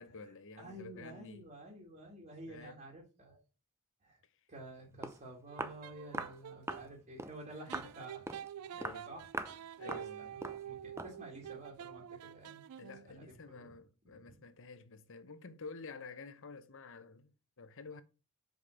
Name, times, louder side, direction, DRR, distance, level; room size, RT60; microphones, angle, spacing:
voice 1, 0.0-1.5 2.5-2.8 8.7-9.1 9.8-10.4 12.8-18.0, left 4 dB, 60° left, 0.9 m, -50 dB
voice 2, 0.6-3.4 4.0-4.2 4.5-8.2 9.1-9.3 9.6-12.6 13.1-13.7 14.1-14.4, right 1 dB, 35° right, 1.9 m, -51 dB
Walk footsteps, 4.7-4.8 5.0-5.2 5.6-5.8 6.1-6.4 6.7-6.9 7.2-7.4 7.7-7.9 8.3-8.5 8.8-9.0 9.3-9.6 9.9-10.1 10.4-10.6 11.0-11.2, right 2 dB, 10° right, 0.6 m, -41 dB
sound 1, 5.5-6.9 7.7-13.1, right 10 dB, 80° right, 0.4 m, -47 dB
5.2 x 4.9 x 6.2 m
head